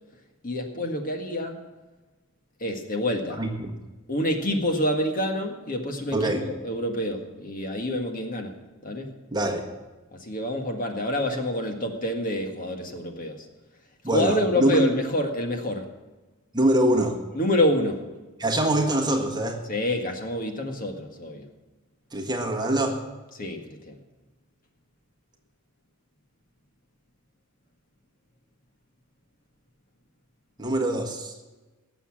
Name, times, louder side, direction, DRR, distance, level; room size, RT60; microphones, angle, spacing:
voice 1, 0.4-1.6 2.6-3.4 4.1-8.5 8.8-9.1 10.1-13.5 14.1-15.9 17.3-18.0 19.7-21.5 23.4-24.0, left 1 dB, 40° left, 3 dB, 1.7 m, -27 dB
voice 2, 3.3-3.7 6.1-6.4 9.3-9.6 14.0-14.9 16.5-17.2 18.4-19.6 22.1-23.0 30.6-31.3, right 1 dB, 20° right, 1 dB, 1.5 m, -24 dB
18.5 x 7.1 x 7.4 m, 1.2 s
head